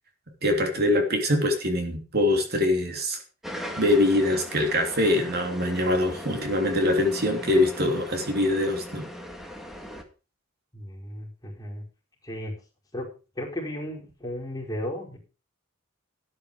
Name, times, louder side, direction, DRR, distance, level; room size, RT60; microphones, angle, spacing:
voice 1, 0.4-3.2 3.8-9.1, left 1 dB, 50° right, 4 dB, 3.1 m, -23 dB
sound 1, 3.4-10.0, equal, ahead, 2.1 m, -39 dB
voice 2, 10.7-11.8 12.2-12.5 12.9-15.2, left 1 dB, 20° left, -3 dB, 4.7 m, -35 dB
13.0 x 9.7 x 5.1 m, 0.33 s
head